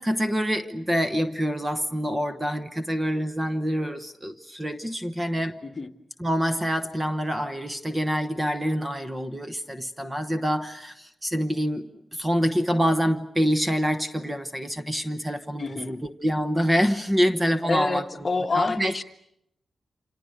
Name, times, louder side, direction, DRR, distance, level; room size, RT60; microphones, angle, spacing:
voice 1, 0.0-5.6 6.2-11.8 12.1-18.0 18.5-19.0, equal, 15° right, 8 dB, 1.0 m, -26 dB
voice 2, 15.6-16.0 17.7-19.0, left 3 dB, 30° left, 5 dB, 1.5 m, -28 dB
29.0 x 27.0 x 6.6 m, 0.79 s
wide cardioid pair, 135°, 0 cm